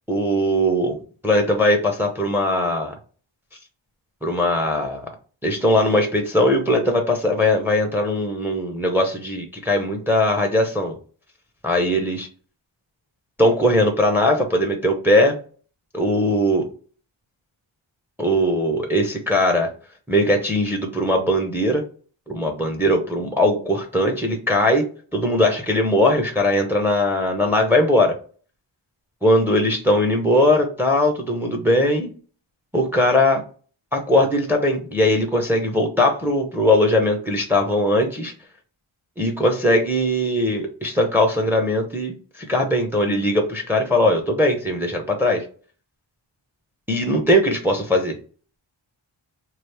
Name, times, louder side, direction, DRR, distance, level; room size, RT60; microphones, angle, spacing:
voice 1, 0.1-1.0 1.2-2.9 4.2-5.1 5.4-10.9 11.6-12.3 13.4-15.4 15.9-16.7 18.2-19.7 20.1-21.8 22.3-24.9 25.1-28.1 29.2-32.1 32.7-33.4 33.9-38.3 39.2-45.4 46.9-48.2, left 1 dB, 5° right, 3 dB, 0.6 m, -20 dB
3.1 x 2.4 x 3.3 m, 0.41 s
wide cardioid pair, 65°, 49 cm